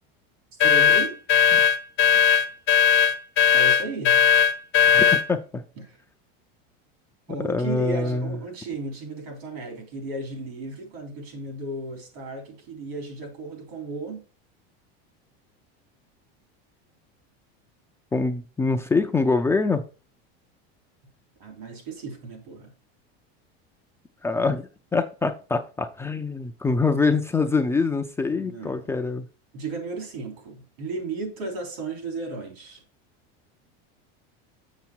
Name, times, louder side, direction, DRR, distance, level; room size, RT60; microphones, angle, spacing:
sound 1, 0.6-5.3, left 7 dB, 40° left, 0.8 m, -18 dB
voice 1, 0.6-1.2 3.5-4.2 5.8-6.0 7.3-14.2 21.4-22.7 28.3-29.0 29.5-32.8, right 3 dB, 80° right, 3.6 m, -34 dB
voice 2, 4.9-5.6 7.4-8.3 18.1-19.8 24.2-29.2, left 4 dB, 10° left, 0.4 m, -24 dB
7.1 x 6.8 x 4.5 m
supercardioid pair, 155°, 31 cm